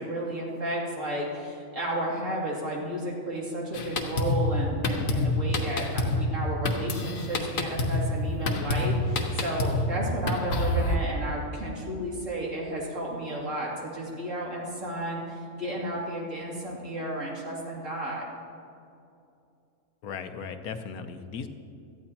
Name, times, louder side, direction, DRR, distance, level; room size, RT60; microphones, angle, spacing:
voice 1, 0.0-18.2, right 1 dB, 60° right, -4 dB, 3.0 m, -32 dB
Drum kit, 3.7-11.0, left 2 dB, 65° left, 1.5 m, -27 dB
voice 2, 20.0-21.5, left 6 dB, 85° left, 8 dB, 1.3 m, -37 dB
17.5 x 13.5 x 2.9 m, 2.5 s
omnidirectional pair, 1.5 m